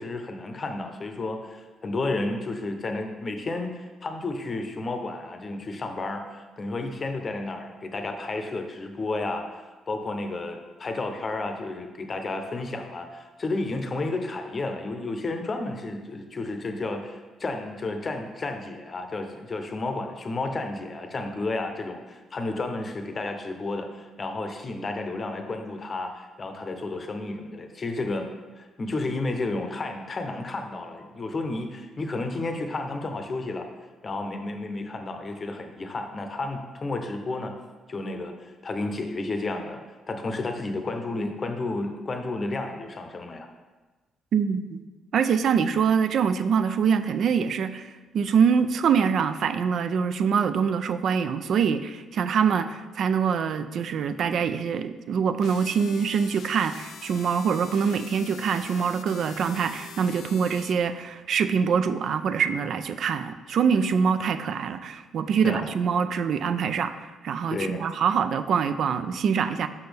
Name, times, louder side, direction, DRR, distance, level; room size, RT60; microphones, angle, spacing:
voice 1, 0.0-9.5 9.9-28.3 28.6-33.7 34.0-37.6 37.9-39.8 40.1-43.5 65.4-65.7 67.5-67.9, left 2 dB, 35° left, 5 dB, 0.7 m, -32 dB
voice 2, 44.3-44.8 45.1-69.7, right 6 dB, 65° right, 11 dB, 0.3 m, -24 dB
sound 1, 55.4-60.7, left 8 dB, 75° left, 0.3 m, -45 dB
6.1 x 5.5 x 3.4 m, 1.2 s
cardioid pair, 90°, 0 cm